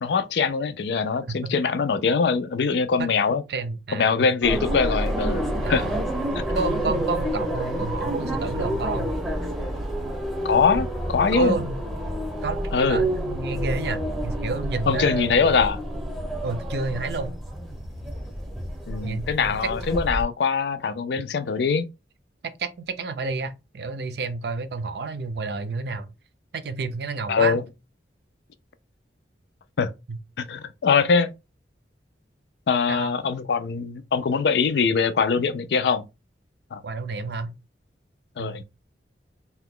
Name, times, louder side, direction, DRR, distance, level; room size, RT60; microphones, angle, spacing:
voice 1, 0.0-3.4 3.9-5.4 5.7-5.9 6.3-6.4 10.4-11.6 12.7-13.1 14.9-15.8 18.9-21.9 27.3-27.6 29.8-29.9 30.4-31.3 32.7-36.0 36.7-36.8 38.4-38.6, left 5 dB, 70° left, 0.4 m, -22 dB
voice 2, 3.5-4.3 5.6-6.0 6.5-9.1 11.3-11.8 12.4-15.4 16.4-17.4 19.0-19.7 22.4-26.1 26.5-27.6 30.1-30.2 32.9-33.2 36.8-37.5 38.4-38.6, right 3 dB, 65° right, 0.5 m, -30 dB
sound 1, 4.4-20.2, right 1 dB, ahead, 0.8 m, -29 dB
2.8 x 2.2 x 3.6 m
head